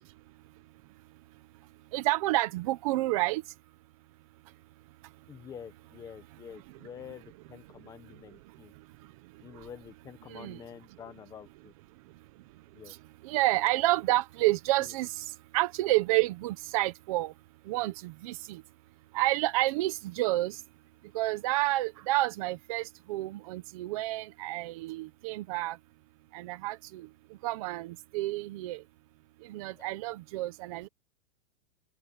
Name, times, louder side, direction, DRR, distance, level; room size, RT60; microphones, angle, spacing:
voice 1, 1.9-3.4 10.3-10.6 13.2-15.2 15.5-17.3 17.7-18.6 19.1-20.6 21.1-25.8 26.3-27.1 27.4-28.8 29.5-30.9, right 18 dB, 25° right, 0.9 m, -29 dB
voice 2, 5.3-8.7 9.4-11.7 12.7-12.9 14.8-15.0 29.7-29.9, left 8 dB, 10° left, 1.2 m, -48 dB
open air
supercardioid pair, 175°, 40 cm